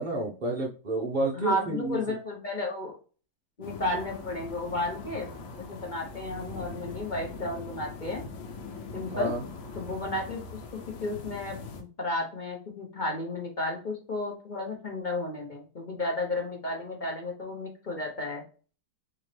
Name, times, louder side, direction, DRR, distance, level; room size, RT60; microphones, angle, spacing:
voice 1, 0.0-2.0 9.1-9.4, right 2 dB, 90° right, -2 dB, 0.4 m, -30 dB
voice 2, 1.3-3.0 3.6-5.3 5.6-8.2 8.9-9.3 9.7-10.6 11.0-18.4, left 2 dB, 40° left, 0 dB, 0.6 m, -33 dB
sound 1, 3.6-11.8, left 3 dB, 80° left, 1.5 m, -42 dB
4.3 x 3.0 x 3.1 m, 0.38 s
omnidirectional pair, 2.0 m